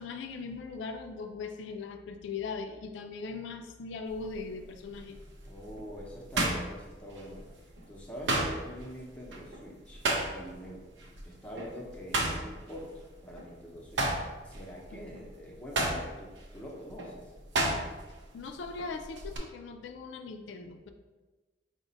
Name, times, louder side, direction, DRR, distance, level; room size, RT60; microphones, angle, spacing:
voice 1, 0.0-5.2 14.9-15.2 18.3-20.9, left 4 dB, 85° left, 5 dB, 0.3 m, -40 dB
sound 1, 4.1-4.4 5.0-7.5 7.8-10.7 11.0-11.2 11.6-13.5 13.8-18.2 18.5-19.4, right 2 dB, 80° right, 0.6 m, -32 dB
voice 2, 5.5-7.5 7.9-17.3, equal, 5° left, -3 dB, 0.6 m, -45 dB
4.9 x 2.1 x 3.9 m, 1.2 s
head